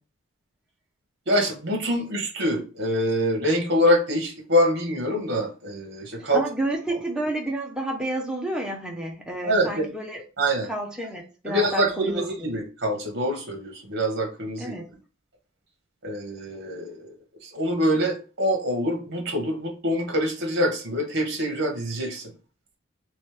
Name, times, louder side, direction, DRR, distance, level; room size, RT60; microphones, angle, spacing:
voice 1, 1.3-6.4 9.4-9.9 10.4-10.7 11.4-14.7 16.0-17.1 17.4-22.3, equal, 50° right, 2 dB, 1.1 m, -25 dB
voice 2, 6.2-10.2 10.7-12.5 14.6-14.8, right 1 dB, 5° right, 0 dB, 0.7 m, -30 dB
3.1 x 3.1 x 3.2 m, 0.35 s
head